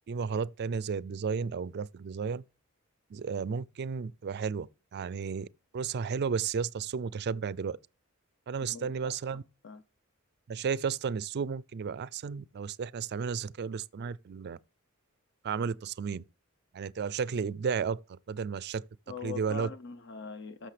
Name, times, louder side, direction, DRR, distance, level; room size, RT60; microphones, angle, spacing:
voice 1, 0.1-2.4 3.1-5.5 5.7-7.8 8.5-9.4 10.5-14.6 15.4-16.2 16.7-18.8 19.2-19.7, right 6 dB, 50° right, 0.4 m, -33 dB
voice 2, 8.7-9.2 9.6-9.8 19.1-20.7, left 4 dB, 55° left, 0.7 m, -42 dB
13.5 x 6.4 x 3.3 m
head